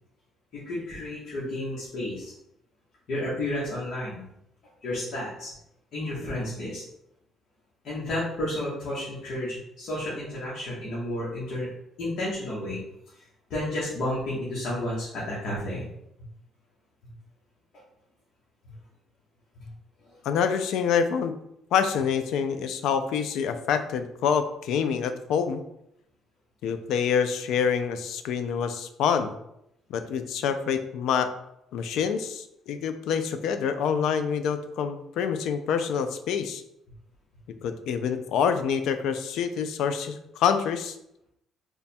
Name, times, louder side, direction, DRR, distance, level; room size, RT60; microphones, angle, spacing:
voice 1, 0.7-2.3 3.1-4.3 4.8-5.5 5.9-6.8 7.8-11.7 12.0-12.8 13.5-15.9 18.6-18.7 19.6-19.7 20.0-20.2, left 1 dB, 55° left, -7 dB, 1.0 m, -31 dB
voice 2, 20.2-21.3 21.7-25.6 26.6-29.3 29.9-31.3 31.7-36.6 37.6-41.0, left 7 dB, 75° left, 9 dB, 0.3 m, -26 dB
3.3 x 2.2 x 4.1 m, 0.80 s
cardioid pair, 165°, 0 cm